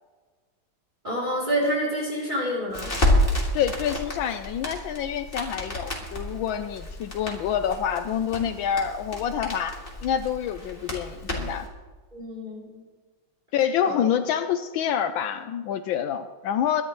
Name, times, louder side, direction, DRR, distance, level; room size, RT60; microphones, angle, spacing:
voice 1, 1.0-2.9 12.1-12.8 13.8-14.0, equal, 20° right, -5 dB, 3.5 m, -28 dB
Crackle, 2.7-11.7, left 1 dB, 25° left, 2.7 m, -30 dB
voice 2, 3.5-11.7 13.5-16.8, left 9 dB, 75° left, 9 dB, 1.4 m, -27 dB
23.5 x 11.0 x 3.1 m, 1.4 s
omnidirectional pair, 2.2 m